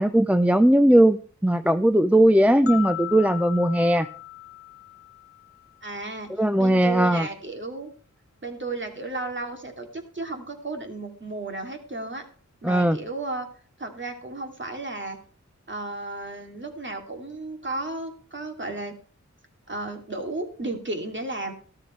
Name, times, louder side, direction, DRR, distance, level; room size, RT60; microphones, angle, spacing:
voice 1, 0.0-4.1 6.4-7.3 12.6-13.0, right 1 dB, 5° right, 11 dB, 0.6 m, -19 dB
sound 1, 2.7-5.8, left 15 dB, 50° left, 1.0 m, -37 dB
voice 2, 5.8-6.3 6.6-7.9 8.4-12.2 12.6-13.5 13.8-15.2 15.7-19.0 19.7-21.5, right 2 dB, 40° right, 4 dB, 2.8 m, -33 dB
13.5 x 13.0 x 3.3 m, 0.40 s
wide cardioid pair, 70°, 30 cm